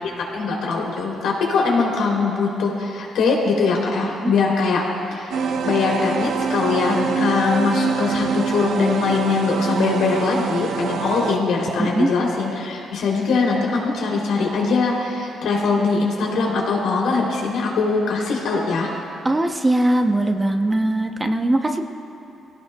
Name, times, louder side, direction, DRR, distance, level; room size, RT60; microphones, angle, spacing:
voice 1, 0.0-4.8 5.1-5.3 5.6-18.9, left 4 dB, 90° left, -2 dB, 3.0 m, -21 dB
sound 1, 5.3-11.4, right 6 dB, 70° right, 0.8 m, -25 dB
voice 2, 11.8-12.1 19.2-21.8, right 1 dB, 15° right, 5 dB, 0.7 m, -20 dB
23.5 x 17.0 x 2.3 m, 2.6 s
cardioid pair, 150°, 0 cm